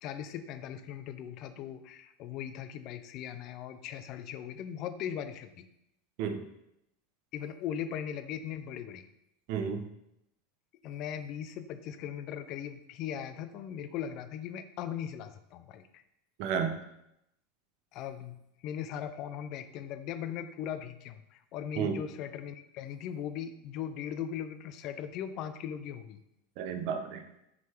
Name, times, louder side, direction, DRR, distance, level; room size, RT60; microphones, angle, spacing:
voice 1, 0.0-5.7 7.3-9.1 10.8-16.0 17.9-26.2, left 9 dB, 35° left, 11 dB, 0.4 m, -39 dB
voice 2, 9.5-9.9 16.4-16.8 21.8-22.0 26.6-27.3, right 7 dB, 45° right, 7 dB, 0.6 m, -32 dB
5.9 x 3.8 x 4.4 m, 0.82 s
supercardioid pair, 175°, 0 cm